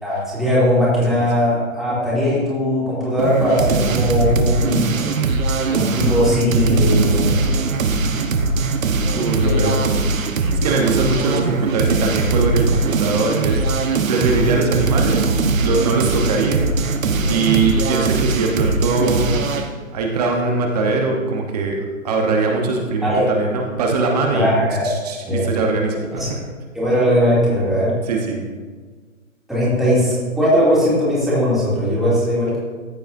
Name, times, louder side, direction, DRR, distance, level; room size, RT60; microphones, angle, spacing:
voice 1, 0.0-4.9 5.7-7.4 9.4-9.7 14.2-14.6 23.0-23.3 24.3-24.9 25.3-25.4 26.1-26.3 26.7-27.9 29.5-32.6, equal, ahead, -9 dB, 2.5 m, -19 dB
sound 1, 3.2-19.7, right 3 dB, 75° right, 1.2 m, -20 dB
voice 2, 9.1-9.9 10.5-16.6 17.3-19.4 19.9-24.6 24.8-26.4 28.0-28.5, right 3 dB, 30° right, 1 dB, 1.0 m, -21 dB
14.5 x 6.8 x 2.6 m, 1.4 s
hypercardioid pair, 150°, 41 cm